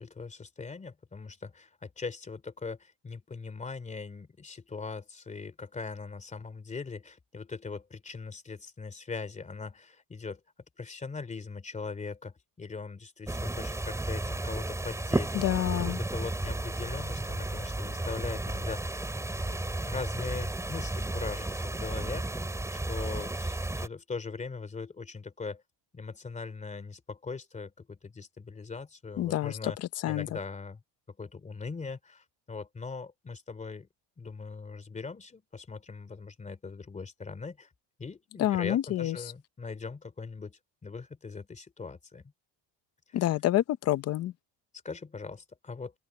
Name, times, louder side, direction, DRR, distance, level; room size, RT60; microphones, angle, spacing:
voice 1, 0.0-10.4 10.8-15.4 15.8-19.0 19.2-25.6 25.9-29.8 30.1-30.8 31.2-33.9 34.2-37.7 38.0-42.3 43.1-43.3 44.8-45.9, left 4 dB, 15° left, 3.0 m, -40 dB
sound 1, 13.3-23.9, right 2 dB, 5° right, 5.6 m, -33 dB
voice 2, 15.3-16.0 29.2-29.5 30.0-30.3 38.4-39.2 43.1-44.3, left 13 dB, 35° left, 0.7 m, -27 dB
open air
cardioid pair, 165°, 43 cm